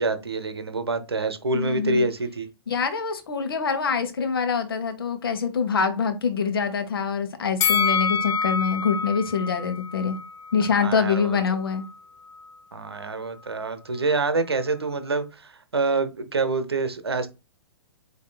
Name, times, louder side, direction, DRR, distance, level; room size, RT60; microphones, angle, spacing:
voice 1, 0.0-2.5 10.7-11.4 12.7-17.3, right 3 dB, 75° right, 0.8 m, -26 dB
voice 2, 1.5-2.0 2.7-10.2 10.5-11.9, left 6 dB, 65° left, 0.9 m, -25 dB
Bell, 7.6-10.8 11.1-11.3, left 6 dB, 25° left, 0.7 m, -26 dB
8.0 x 2.7 x 2.3 m
figure-of-eight pair, 110°, 13 cm